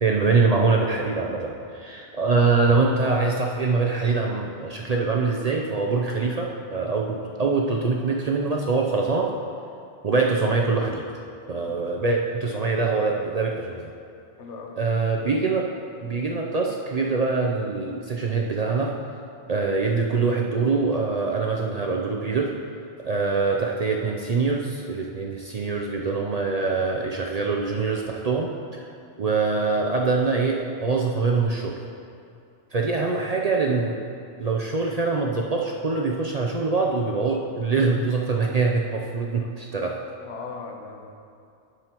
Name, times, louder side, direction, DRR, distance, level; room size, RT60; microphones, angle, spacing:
voice 1, 0.0-9.3 10.0-11.1 11.5-13.9 14.8-15.7 16.0-18.9 19.5-22.5 23.0-28.9 29.2-31.8 32.7-34.0 34.4-40.0, right 4 dB, 50° right, -1 dB, 0.5 m, -24 dB
voice 2, 14.4-14.8 39.7-41.1, left 4 dB, 85° left, 3 dB, 1.1 m, -39 dB
11.0 x 6.3 x 3.0 m, 2.5 s
omnidirectional pair, 1.2 m